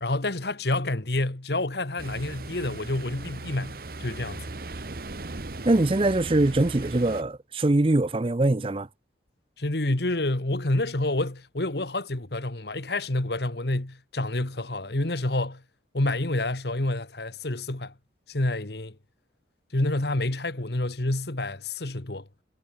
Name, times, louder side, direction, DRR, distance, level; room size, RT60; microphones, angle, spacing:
voice 1, 0.0-4.4 9.6-15.6 15.9-17.9 18.3-18.9 19.7-22.2, left 2 dB, 65° left, 1.7 m, -28 dB
Ocean, 2.0-7.2, right 2 dB, 55° right, 1.2 m, -38 dB
voice 2, 5.7-8.9, right 2 dB, 30° right, 0.6 m, -22 dB
head